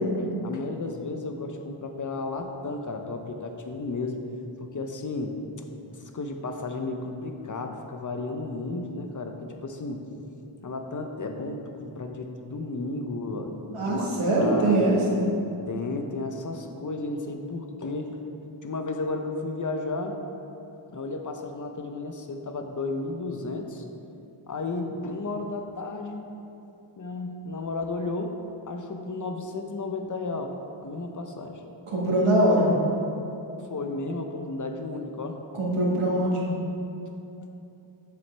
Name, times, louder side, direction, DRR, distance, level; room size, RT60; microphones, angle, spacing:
voice 1, 0.4-4.2 4.6-5.4 5.9-10.1 10.6-15.0 15.7-18.2 18.6-20.2 20.9-23.8 24.5-26.3 27.0-28.4 28.7-30.6 30.8-31.6 33.7-35.4, left 3 dB, 40° left, 5 dB, 0.6 m, -33 dB
voice 2, 13.7-15.2 31.9-32.7 35.5-36.5, right 1 dB, 80° right, -5 dB, 1.6 m, -22 dB
7.6 x 7.0 x 3.3 m, 2.8 s
wide cardioid pair, 95°, 50 cm